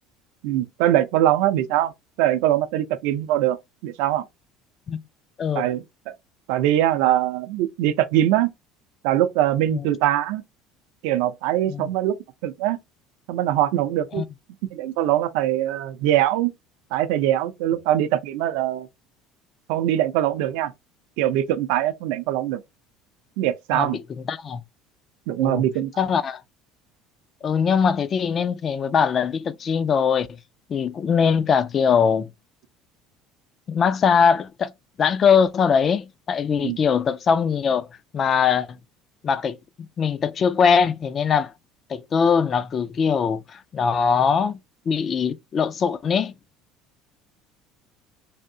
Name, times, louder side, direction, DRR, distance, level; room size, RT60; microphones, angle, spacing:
voice 1, 0.4-1.9 2.2-3.6 3.8-4.3 5.6-6.1 6.5-8.5 9.0-10.4 11.0-12.2 12.4-12.8 13.3-14.2 14.6-16.5 16.9-18.9 19.7-20.7 21.2-22.6 23.4-24.0 25.3-25.9 36.6-36.8, right 12 dB, 80° right, 0.5 m, -22 dB
voice 2, 24.3-24.6 25.4-25.6 26.0-26.4 27.4-30.3 30.7-32.3 33.7-34.7 35.0-37.9 38.1-38.8 39.2-39.6 40.0-41.5 41.9-44.6 44.9-46.3, left 6 dB, 30° left, 0.3 m, -21 dB
3.4 x 2.7 x 2.6 m
cardioid pair, 140°, 0 cm